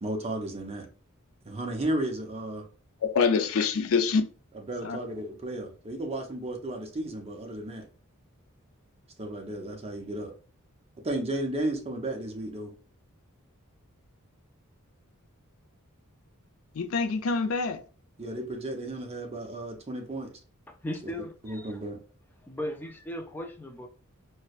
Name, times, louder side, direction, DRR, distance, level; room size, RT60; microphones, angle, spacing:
voice 1, 0.0-0.9 1.5-2.6 4.5-7.9 9.2-10.3 11.0-12.7 18.2-20.3 21.0-21.1 21.4-22.0, right 1 dB, 30° right, 0.7 m, -33 dB
voice 2, 3.0-4.3 4.8-5.0 16.7-17.8, left 5 dB, 70° left, 0.4 m, -25 dB
voice 3, 20.7-21.8 22.4-23.9, left 1 dB, 10° left, 0.4 m, -37 dB
4.3 x 2.1 x 2.4 m
head